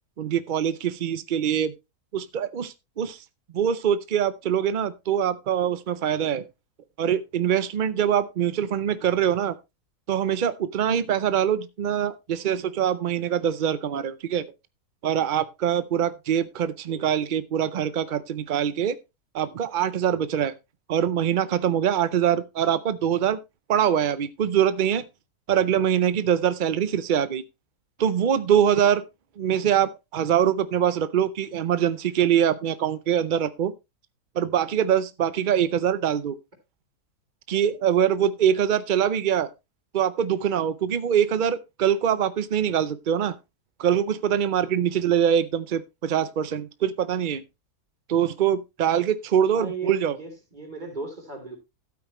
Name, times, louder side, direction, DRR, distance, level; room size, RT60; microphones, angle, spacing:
voice 1, 0.2-1.7 2.1-3.2 3.5-6.5 7.0-9.6 10.1-14.4 15.0-19.0 19.3-20.5 20.9-23.4 23.7-25.0 25.5-27.4 28.0-29.0 29.4-33.7 34.4-36.3 37.5-39.5 39.9-43.4 43.8-47.4 48.1-50.2, right 9 dB, 75° right, 0.4 m, -23 dB
voice 2, 49.5-51.6, right 4 dB, 30° right, 3.2 m, -36 dB
12.5 x 8.6 x 3.0 m
omnidirectional pair, 1.7 m